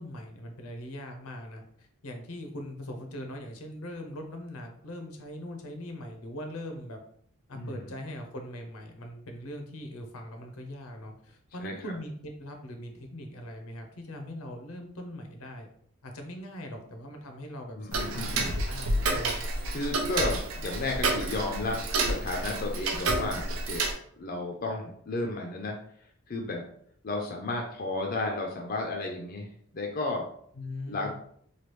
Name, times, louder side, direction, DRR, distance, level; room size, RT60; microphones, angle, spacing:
voice 1, 0.0-7.0 7.5-15.7 16.0-19.5 30.5-31.1, left 1 dB, 80° left, 4 dB, 0.7 m, -41 dB
voice 2, 7.5-7.9 11.6-11.7 17.7-18.5 19.7-23.9 24.2-25.8 26.3-26.7 27.0-30.2 30.9-31.1, left 2 dB, 40° left, 1 dB, 0.4 m, -33 dB
Tick-tock, 17.9-23.9, right 2 dB, 70° right, 0.5 m, -29 dB
3.2 x 2.3 x 3.0 m, 0.62 s
head